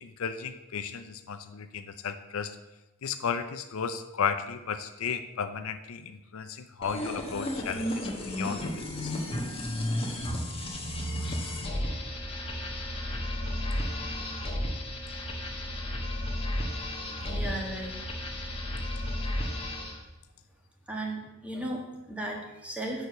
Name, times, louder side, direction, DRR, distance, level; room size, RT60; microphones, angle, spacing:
voice 1, 0.0-2.6 3.0-8.6 9.0-9.1, left 6 dB, 70° left, 10 dB, 0.5 m, -34 dB
sound 1, 6.8-20.0, left 1 dB, 25° left, 1.3 m, -33 dB
voice 2, 17.3-18.0 20.9-23.1, right 1 dB, 5° right, -1 dB, 1.4 m, -35 dB
6.6 x 4.8 x 6.8 m, 1.0 s
head